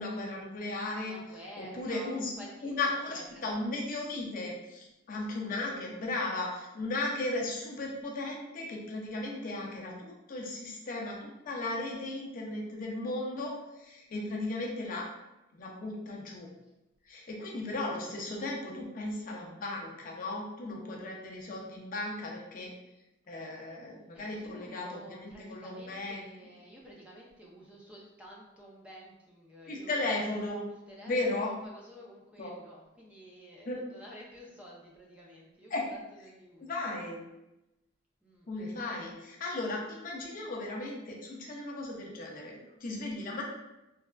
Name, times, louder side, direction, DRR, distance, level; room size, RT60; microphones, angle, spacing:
voice 1, 0.0-1.2 1.6-2.3 2.6-15.1 15.6-16.5 17.1-22.7 23.3-26.2 29.7-30.6 31.1-31.5 32.4-32.5 33.7-33.8 35.7-35.8 36.6-37.2 38.5-43.5, left 2 dB, 45° left, -1 dB, 0.5 m, -36 dB
voice 2, 1.0-3.5 11.0-11.4 16.6-16.7 24.1-30.2 30.9-36.8 38.2-38.5, equal, 5° right, -4 dB, 0.4 m, -51 dB
3.2 x 2.3 x 2.2 m, 0.94 s
head